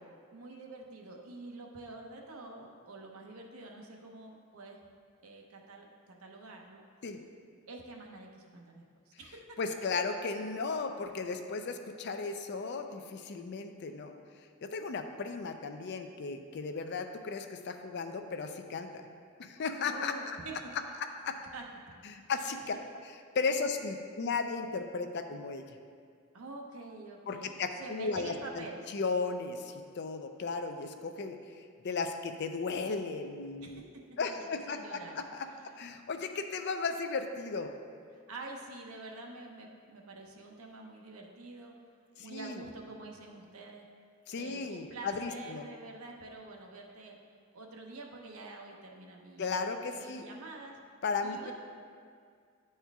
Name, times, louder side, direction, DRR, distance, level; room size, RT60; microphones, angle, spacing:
voice 1, 0.3-4.8 5.2-6.8 7.7-9.6 19.9-20.7 21.5-21.7 22.4-22.6 26.3-28.8 33.6-35.2 35.5-35.7 38.1-41.7 42.2-43.9 44.4-47.2 47.5-49.5 50.0-50.8 51.2-51.5, right 2 dB, 85° right, 1 dB, 0.9 m, -47 dB
voice 2, 9.6-14.2 14.6-18.9 19.4-20.1 21.0-21.4 22.0-22.7 23.3-25.6 27.3-28.7 28.9-33.8 34.2-35.5 35.8-37.7 42.2-42.6 44.3-45.7 49.4-50.2 51.0-51.5, left 4 dB, 50° left, 7 dB, 0.4 m, -35 dB
10.0 x 4.3 x 3.5 m, 2.2 s
head